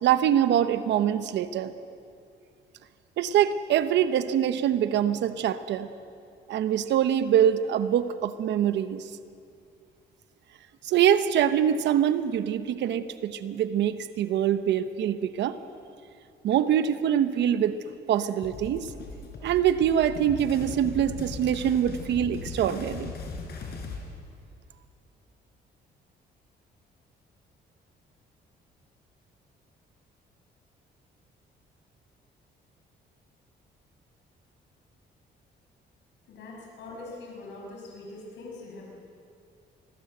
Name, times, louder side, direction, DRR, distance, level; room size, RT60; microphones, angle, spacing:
voice 1, 0.0-1.7 3.2-5.9 6.5-9.1 10.8-15.6 16.4-17.8 18.1-18.9 19.4-23.1, right 10 dB, 80° right, 11 dB, 1.0 m, -24 dB
sound 1, 18.4-24.0, left 3 dB, 65° left, 4.8 m, -38 dB
voice 2, 36.3-38.8, left 2 dB, 80° left, -2 dB, 6.1 m, -42 dB
26.0 x 20.0 x 7.9 m, 2.4 s
cardioid pair, 125°, 18 cm